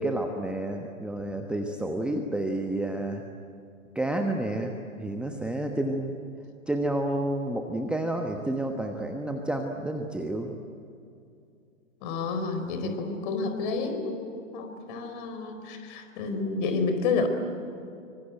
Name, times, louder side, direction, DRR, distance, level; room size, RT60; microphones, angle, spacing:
voice 1, 0.0-3.2 3.9-6.1 6.7-10.6 12.8-13.0, right 1 dB, 5° right, 3 dB, 1.2 m, -30 dB
voice 2, 12.0-17.3, left 4 dB, 40° left, 7 dB, 4.4 m, -30 dB
26.0 x 24.5 x 9.0 m, 2.5 s
figure-of-eight pair, 115°, 39 cm